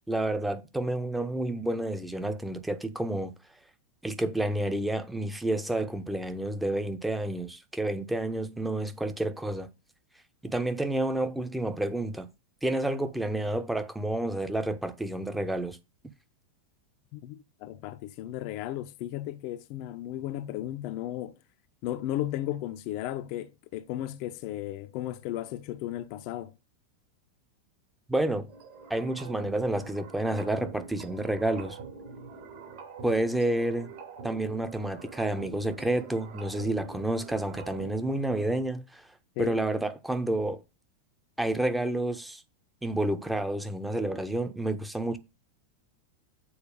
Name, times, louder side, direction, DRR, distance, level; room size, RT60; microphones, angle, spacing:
voice 1, 0.1-3.3 4.0-9.7 10.4-12.3 12.6-15.8 28.1-28.5 28.9-31.8 33.0-33.9 34.2-39.1 39.4-40.6 41.4-42.4 42.8-45.2, right 1 dB, 5° right, 0.8 m, -29 dB
voice 2, 17.1-21.4 21.8-26.5 39.4-39.6, left 13 dB, 45° left, 0.7 m, -35 dB
sound 1, 28.5-38.2, right 5 dB, 50° right, 2.5 m, -45 dB
7.2 x 4.4 x 6.6 m
figure-of-eight pair, 90°, 0 cm